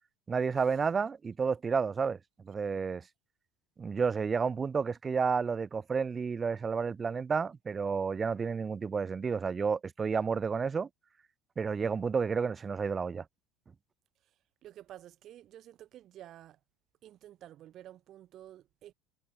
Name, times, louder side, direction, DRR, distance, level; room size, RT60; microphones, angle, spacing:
voice 1, 0.3-2.2 2.5-3.0 3.8-10.9 11.6-13.2, right 5 dB, 20° right, 1.3 m, -31 dB
voice 2, 14.6-16.6 17.0-18.9, right 12 dB, 45° right, 2.7 m, -51 dB
supercardioid pair, 130°, 0 cm